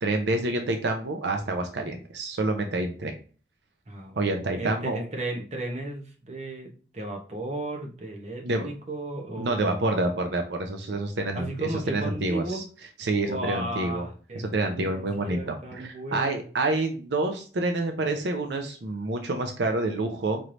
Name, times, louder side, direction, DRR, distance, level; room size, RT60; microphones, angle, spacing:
voice 1, 0.0-3.1 4.2-5.0 8.4-8.7 9.4-11.5 11.9-12.6 13.0-14.1 14.4-20.4, right 2 dB, 75° right, 5 dB, 0.6 m, -28 dB
voice 2, 3.9-10.1 11.3-12.6 13.2-16.5, right 1 dB, 40° right, 1 dB, 0.8 m, -35 dB
4.5 x 3.2 x 2.5 m, 0.39 s
head